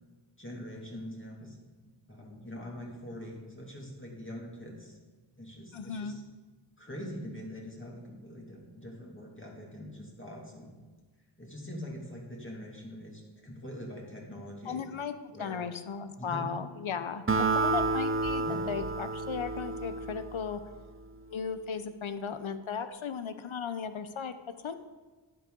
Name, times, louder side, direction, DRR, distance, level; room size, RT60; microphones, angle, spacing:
voice 1, 0.4-1.6 2.1-5.0 5.4-6.2 6.8-10.8 11.4-14.8 15.3-15.7 16.2-16.6 18.4-18.7, equal, 25° left, -3 dB, 2.2 m, -43 dB
voice 2, 5.7-6.2 14.7-17.2 17.5-20.6 21.3-24.7, left 6 dB, 70° left, 10 dB, 0.8 m, -36 dB
Acoustic guitar, 17.3-20.9, right 3 dB, 25° right, 0.6 m, -30 dB
11.5 x 9.0 x 3.8 m, 1.3 s
wide cardioid pair, 70°, 50 cm